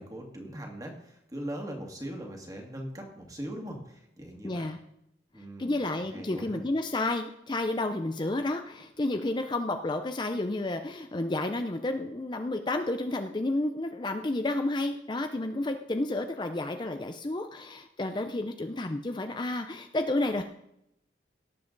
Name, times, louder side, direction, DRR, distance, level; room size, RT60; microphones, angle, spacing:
voice 1, 0.0-4.7 5.3-6.6, equal, 20° right, 2 dB, 2.0 m, -40 dB
voice 2, 4.4-4.8 5.6-20.4, left 2 dB, 25° left, 7 dB, 0.5 m, -31 dB
17.5 x 7.5 x 3.9 m, 0.80 s
head